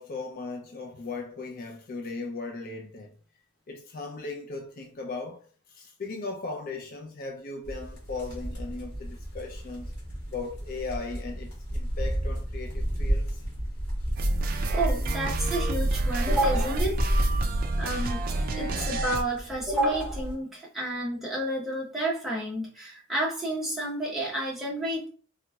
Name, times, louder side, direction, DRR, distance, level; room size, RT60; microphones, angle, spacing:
voice 1, 0.0-3.1 3.7-9.9 10.3-13.4, left 3 dB, 40° left, 0.3 m, -37 dB
sound 1, 7.6-20.3, equal, 85° left, 1.6 m, -31 dB
sound 2, 14.2-19.2, right 2 dB, 40° right, 0.3 m, -29 dB
voice 2, 14.7-17.0 17.8-18.3 18.6-25.1, right 1 dB, ahead, 0.8 m, -30 dB
3.4 x 2.9 x 2.3 m
head